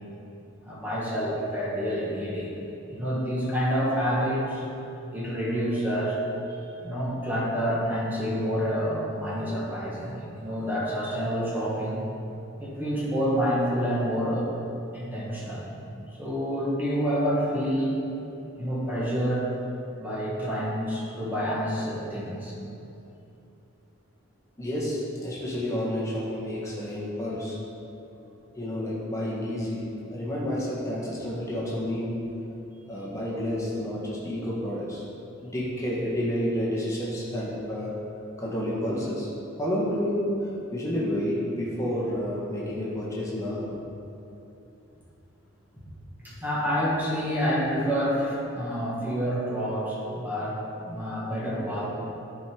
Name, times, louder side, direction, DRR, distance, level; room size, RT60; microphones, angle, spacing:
voice 1, 0.6-2.5 2.9-4.6 5.1-6.2 6.8-12.0 12.6-14.5 14.9-15.7 16.2-18.0 18.6-19.5 20.0-22.5 46.2-51.9, equal, 10° right, -7 dB, 1.7 m, -28 dB
voice 2, 24.6-27.6 28.5-32.3 32.9-35.0 35.4-38.0 38.4-39.3 39.6-43.7, equal, 15° left, -7 dB, 1.6 m, -30 dB
11.0 x 5.1 x 4.6 m, 2.8 s
head